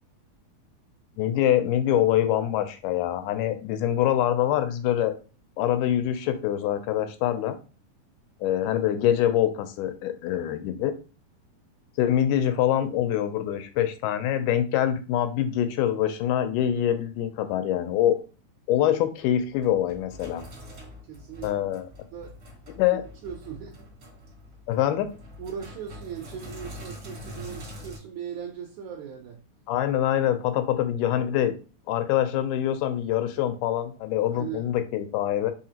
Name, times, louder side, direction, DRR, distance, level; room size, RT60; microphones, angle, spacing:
voice 1, 1.2-5.1 5.6-7.6 8.4-10.9 12.0-18.2 18.7-20.4 21.4-21.9 22.8-23.0 24.7-25.1 29.7-31.5 31.9-35.5, left 11 dB, 85° left, 2.1 m, -24 dB
Sink (filling or washing), 19.1-28.0, left 1 dB, 60° right, 0.9 m, -44 dB
voice 2, 21.1-21.5 22.1-22.4 22.9-23.9 25.4-29.4 34.3-34.7, right 8 dB, 75° right, 1.8 m, -39 dB
4.9 x 2.8 x 2.8 m
omnidirectional pair, 3.6 m